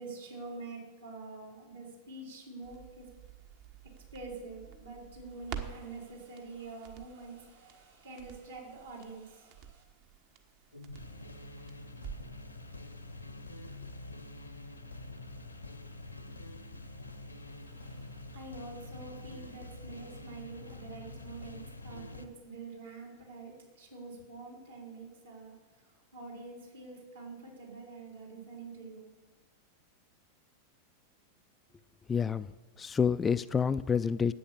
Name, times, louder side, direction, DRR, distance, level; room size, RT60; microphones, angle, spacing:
voice 1, 0.0-3.1 4.1-9.8 17.4-25.5 26.1-29.1, right 3 dB, 70° right, -1 dB, 4.0 m, -46 dB
Crackle, 2.6-12.4 12.7-12.8, right 8 dB, 50° right, 1.1 m, -49 dB
sound 1, 10.7-22.3, left 2 dB, 85° left, 1.0 m, -46 dB
voice 2, 32.1-32.5 32.8-34.3, left 6 dB, 20° left, 14 dB, 0.3 m, -28 dB
10.5 x 8.5 x 7.3 m, 1.2 s
figure-of-eight pair, 90°, 0 cm